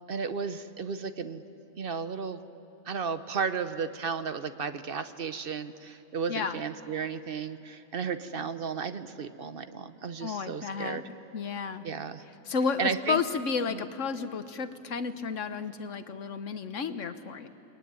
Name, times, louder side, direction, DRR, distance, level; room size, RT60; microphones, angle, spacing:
voice 1, 0.1-1.4 1.8-2.4 2.9-11.0 11.8-12.2 12.8-13.2 13.7-13.8, right 6 dB, 45° right, 11 dB, 0.9 m, -34 dB
voice 2, 6.3-6.6 10.2-11.0 11.3-11.8 12.5-17.5, left 5 dB, 55° left, 10 dB, 1.3 m, -32 dB
29.0 x 21.5 x 9.6 m, 2.9 s
omnidirectional pair, 1.6 m